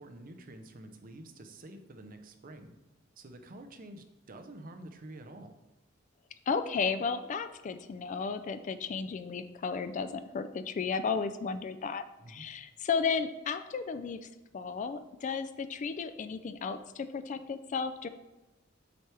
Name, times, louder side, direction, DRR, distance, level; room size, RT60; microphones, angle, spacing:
voice 1, 0.0-2.7 3.2-5.6 12.2-12.5, right 1 dB, 45° right, 7 dB, 0.6 m, -48 dB
voice 2, 6.5-14.2 14.5-18.1, left 5 dB, 40° left, 10 dB, 0.3 m, -34 dB
7.8 x 4.5 x 3.3 m, 1.0 s
head